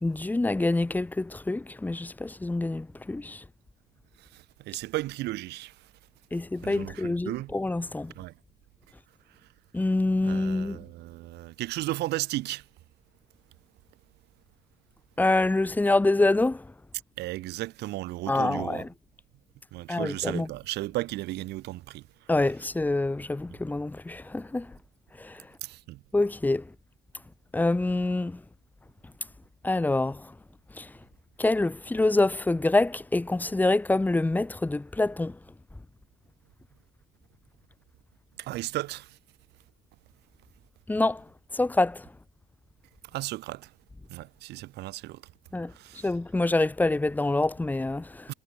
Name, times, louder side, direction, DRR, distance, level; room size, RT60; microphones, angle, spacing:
voice 1, 0.0-3.4 6.3-8.1 9.7-10.8 15.2-16.7 18.3-18.9 19.9-20.5 22.3-24.7 25.2-25.4 26.1-26.6 27.5-28.4 29.6-30.3 30.8-30.9 31.4-35.4 40.9-41.2 41.5-42.1 45.5-45.7 46.0-48.3, left 2 dB, 10° left, 1.0 m, -26 dB
voice 2, 4.3-5.7 6.6-7.5 8.2-8.3 10.2-12.6 17.2-18.8 19.7-22.0 23.5-23.6 25.6-26.0 38.4-39.1 43.1-43.7 44.1-45.2 45.8-46.1 48.3-48.4, right 17 dB, 85° right, 3.9 m, -34 dB
cardioid pair, 110°, 17 cm